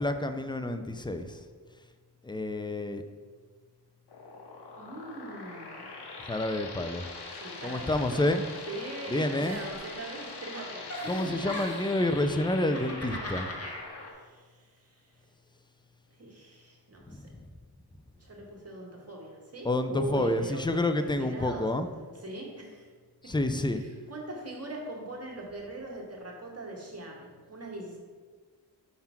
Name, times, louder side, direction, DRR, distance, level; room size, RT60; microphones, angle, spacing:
voice 1, 0.0-1.4 2.2-3.0 6.3-7.1 7.6-8.4 9.1-9.6 11.1-13.5 17.1-17.5 19.6-21.9 23.2-23.8, left 1 dB, 10° left, 8 dB, 0.5 m, -29 dB
sound 1, 4.1-14.1, left 3 dB, 80° left, 1.0 m, -43 dB
voice 2, 4.8-5.9 7.3-8.3 8.7-11.7 14.1-15.2 16.2-17.2 18.2-21.6 22.1-22.9 23.2-23.3 23.7-28.0, right 2 dB, 40° right, -2 dB, 1.9 m, -41 dB
Giggle, 9.4-10.2 10.5-12.0 12.5-13.8, left 1 dB, 35° left, 1.4 m, -40 dB
5.6 x 3.7 x 5.9 m, 1.5 s
cardioid pair, 50°, 40 cm